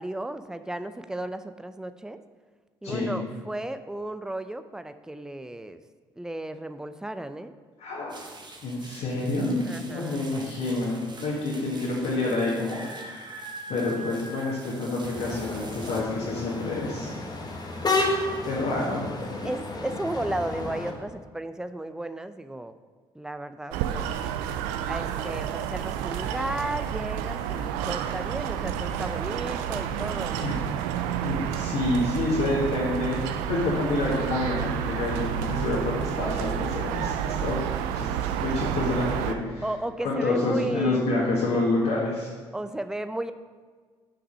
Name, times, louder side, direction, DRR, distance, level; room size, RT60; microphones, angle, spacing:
voice 1, 0.0-2.2 2.8-5.8 6.2-7.5 9.6-10.2 13.9-14.1 19.4-22.7 23.1-24.1 24.9-30.5 39.6-41.1 42.5-43.3, right 1 dB, 5° right, 11 dB, 0.5 m, -34 dB
voice 2, 2.8-3.1 7.8-8.2 8.6-12.8 13.7-17.1 18.5-19.1 19.4-19.5 30.4-30.6 31.2-33.2 33.5-37.6 37.9-39.6 40.0-42.3, left 2 dB, 60° left, -7 dB, 1.8 m, -28 dB
sound 1, 8.1-16.0, right 2 dB, 35° right, 1.3 m, -43 dB
sound 2, 15.0-20.9, left 2 dB, 30° left, 1.4 m, -31 dB
sound 3, 23.7-39.3, right 9 dB, 70° right, 0.5 m, -30 dB
6.0 x 5.9 x 5.4 m, 1.5 s
figure-of-eight pair, 50°, 13 cm